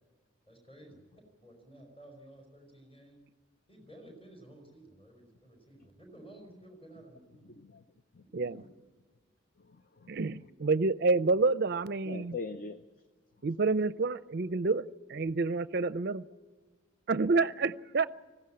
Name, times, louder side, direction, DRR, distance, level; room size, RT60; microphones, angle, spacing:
voice 1, 0.5-1.0 1.4-3.2 3.7-7.5 8.2-8.7, right 1 dB, 25° left, 1 dB, 5.0 m, -54 dB
voice 2, 7.5-7.8 8.1-8.2 9.6-10.1 12.1-12.8, left 4 dB, 45° left, 10 dB, 0.6 m, -42 dB
voice 3, 10.1-12.4 13.4-16.2 17.1-18.1, right 3 dB, 50° right, 16 dB, 0.5 m, -28 dB
19.5 x 15.5 x 8.7 m, 1.4 s
head